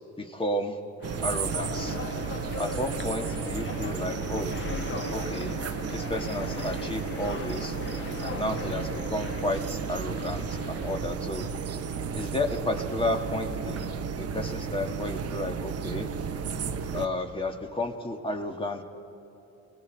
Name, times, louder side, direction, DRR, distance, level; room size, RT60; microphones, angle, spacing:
voice 1, 0.2-0.8 1.2-2.0 2.6-4.6 5.1-5.6 5.9-7.8 8.2-11.5 12.1-16.1 16.9-18.8, left 1 dB, 15° left, 3 dB, 2.0 m, -32 dB
sound 1, 1.0-11.1, left 4 dB, 40° left, 1.4 m, -39 dB
sound 2, 1.0-17.1, right 6 dB, 50° right, 1.1 m, -33 dB
29.5 x 19.5 x 4.7 m, 2.9 s
cardioid pair, 90°, 30 cm